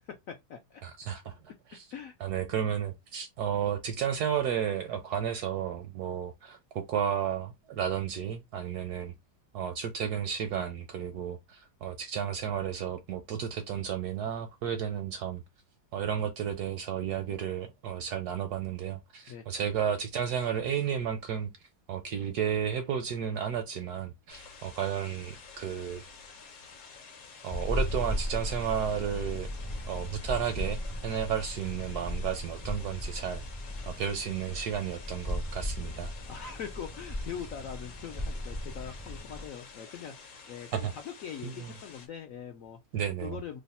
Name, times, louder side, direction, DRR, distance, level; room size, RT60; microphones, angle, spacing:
voice 1, 0.1-0.8 1.9-2.1 19.3-19.4 36.3-42.8 43.2-43.6, left 8 dB, 80° left, 0.7 m, -42 dB
voice 2, 0.8-1.4 1.7-1.9 2.2-9.1 9.5-15.4 15.9-21.5 21.9-26.0 27.4-29.5 29.9-33.4 33.8-36.1 40.7-40.9 41.4-41.7 42.9-43.4, right 8 dB, 70° right, 0.9 m, -32 dB
sound 1, 24.3-42.1, left 5 dB, 55° left, 1.0 m, -50 dB
sound 2, 27.5-39.5, left 1 dB, 25° left, 0.3 m, -36 dB
3.1 x 2.1 x 4.0 m
omnidirectional pair, 2.0 m